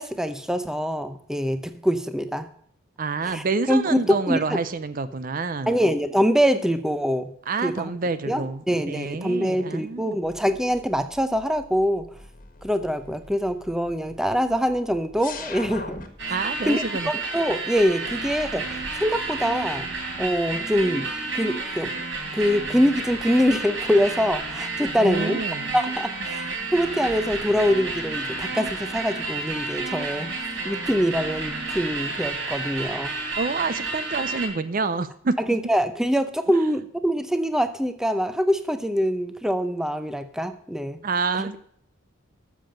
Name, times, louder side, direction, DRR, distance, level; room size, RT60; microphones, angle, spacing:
voice 1, 0.0-2.5 3.2-4.6 5.7-7.3 7.6-7.9 8.3-12.1 12.6-16.0 16.7-19.8 20.2-21.1 21.3-21.9 22.3-25.4 25.7-30.3 30.6-33.1 35.5-41.0 41.4-41.5, equal, ahead, 9 dB, 0.6 m, -24 dB
voice 2, 3.0-5.8 7.5-10.2 16.3-17.1 25.0-25.7 33.4-35.3 41.0-41.6, right 4 dB, 40° right, 13 dB, 0.5 m, -27 dB
sound 1, 10.3-16.9, left 3 dB, 40° left, 1.6 m, -42 dB
sound 2, 16.2-34.5, right 3 dB, 60° right, 3.8 m, -31 dB
13.5 x 7.2 x 5.2 m, 0.64 s
head